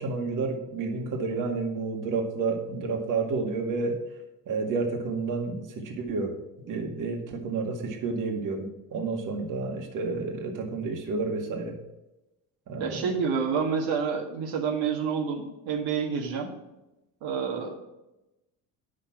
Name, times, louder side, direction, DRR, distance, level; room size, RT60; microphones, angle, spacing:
voice 1, 0.0-4.0 4.5-6.3 6.6-11.8 12.7-13.0, right 4 dB, 55° right, 2 dB, 2.1 m, -30 dB
voice 2, 12.8-16.5 17.2-17.7, right 6 dB, 75° right, 0 dB, 1.9 m, -28 dB
9.7 x 6.6 x 6.0 m, 0.95 s
cardioid pair, 130°, 39 cm